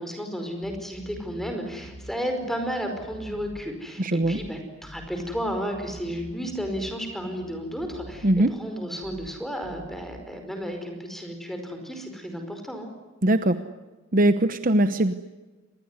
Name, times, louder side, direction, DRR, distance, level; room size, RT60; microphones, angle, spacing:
voice 1, 0.0-8.3 8.6-12.9, equal, ahead, 5 dB, 4.9 m, -33 dB
sound 1, 0.6-2.2 2.4-3.7 4.2-4.5 4.8-7.0 7.2-8.5 9.0-9.3 9.6-10.2, equal, 45° left, 4.1 m, -45 dB
voice 2, 4.0-4.4 8.2-8.6 13.2-13.6 14.1-15.1, right 1 dB, 40° right, 11 dB, 1.0 m, -21 dB
26.5 x 20.5 x 9.7 m, 1.2 s
head